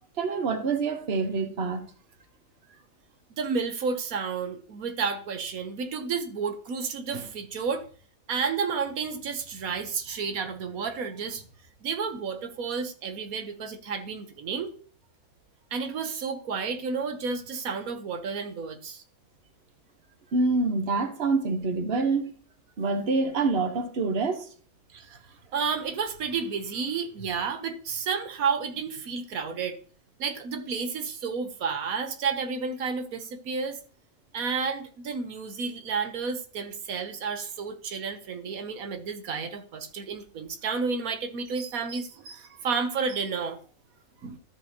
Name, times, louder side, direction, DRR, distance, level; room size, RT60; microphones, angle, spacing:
voice 1, 0.2-1.8 20.3-22.3 22.8-24.5, right 3 dB, 50° right, 1.4 m, -26 dB
voice 2, 3.4-7.9 8.3-11.4 11.8-14.7 15.7-19.0 24.9-25.2 25.5-29.8 30.2-33.8 34.3-43.6 44.2-44.4, right 5 dB, 85° right, 1.4 m, -31 dB
13.5 x 6.9 x 2.9 m
omnidirectional pair, 1.5 m